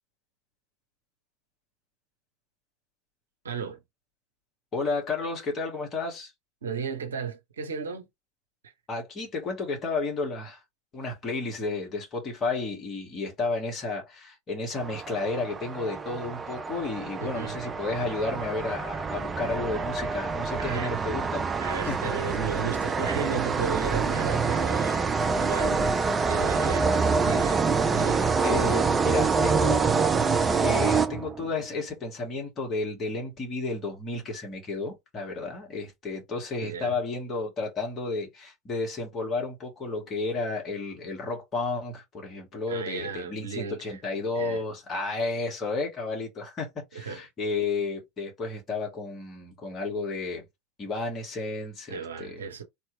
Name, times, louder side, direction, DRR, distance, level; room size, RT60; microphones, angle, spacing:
voice 1, 3.4-3.8 6.6-8.1 8.6-8.7 17.2-17.6 20.6-20.9 21.6-25.8 26.3-26.9 27.2-27.6 27.9-28.4 36.6-37.0 42.7-44.0 44.3-44.6 46.9-47.2 51.9-52.6, right 6 dB, 75° right, 0.7 m, -34 dB
voice 2, 4.7-6.3 8.9-10.6 10.9-21.5 21.8-22.0 28.4-29.9 30.5-50.5 50.8-52.4, left 3 dB, 30° left, 1.8 m, -32 dB
sound 1, 14.8-31.6, right 4 dB, 20° right, 0.4 m, -26 dB
3.3 x 2.9 x 2.7 m
figure-of-eight pair, 75°, 0 cm